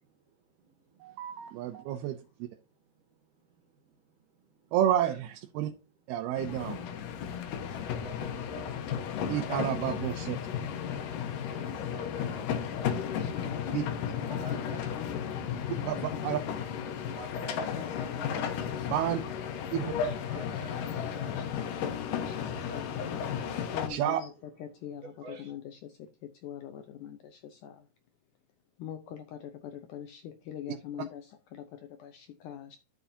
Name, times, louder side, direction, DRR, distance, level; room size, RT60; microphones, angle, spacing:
voice 1, 1.0-2.5 4.7-5.7 6.1-6.8 9.3-10.4 13.7-13.8 15.9-16.4 18.9-19.2 19.7-19.9 23.9-24.2, right 11 dB, 85° right, 2.7 m, -30 dB
sound 1, 6.4-23.9, left 8 dB, 70° left, 2.4 m, -34 dB
voice 2, 7.8-8.8 11.5-12.0 12.3-12.4 14.4-15.2 17.0-18.5 18.7-18.8 20.3-20.7 21.0-21.4 22.7-23.0 23.4-23.6 25.2-25.5, right 2 dB, 65° right, 2.7 m, -49 dB
voice 3, 12.1-13.7 14.0-15.3 17.4-19.2 19.6-22.9 23.7-24.3 24.6-27.8 28.8-32.8, left 9 dB, 85° left, 1.8 m, -44 dB
11.0 x 7.1 x 2.7 m
omnidirectional pair, 4.5 m